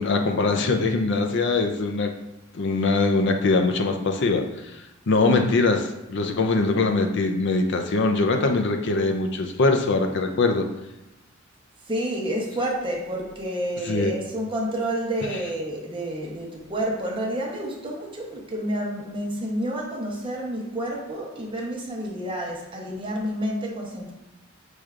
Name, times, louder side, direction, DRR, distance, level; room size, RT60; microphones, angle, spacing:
voice 1, 0.0-2.1 2.5-4.4 5.1-10.7 13.9-14.1, left 3 dB, 60° left, 5 dB, 0.5 m, -22 dB
voice 2, 11.9-24.1, right 1 dB, 25° right, -2 dB, 0.9 m, -29 dB
6.1 x 3.3 x 2.4 m, 0.96 s
head